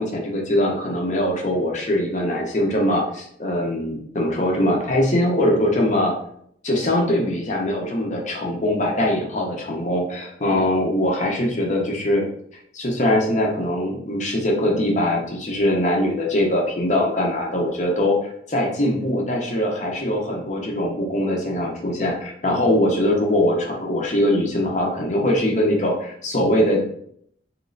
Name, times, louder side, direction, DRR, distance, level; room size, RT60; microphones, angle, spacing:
voice 1, 0.0-6.1 6.6-12.2 12.7-18.2 18.5-26.9, left 1 dB, 40° left, 0 dB, 0.7 m, -22 dB
3.1 x 2.9 x 2.5 m, 0.68 s
head